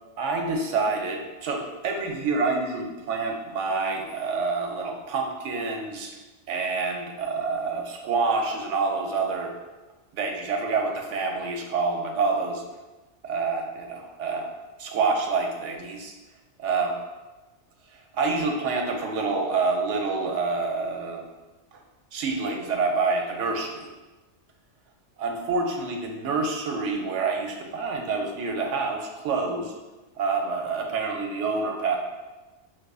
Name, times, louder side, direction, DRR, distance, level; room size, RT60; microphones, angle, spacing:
voice 1, 0.2-6.2 6.5-9.5 10.1-12.6 13.2-14.5 14.8-16.1 16.6-16.9 18.1-21.3 22.1-23.9 25.2-29.7 30.2-32.0, right 4 dB, 80° right, 2 dB, 0.9 m, -27 dB
4.7 x 2.4 x 2.3 m, 1.1 s
omnidirectional pair, 1.2 m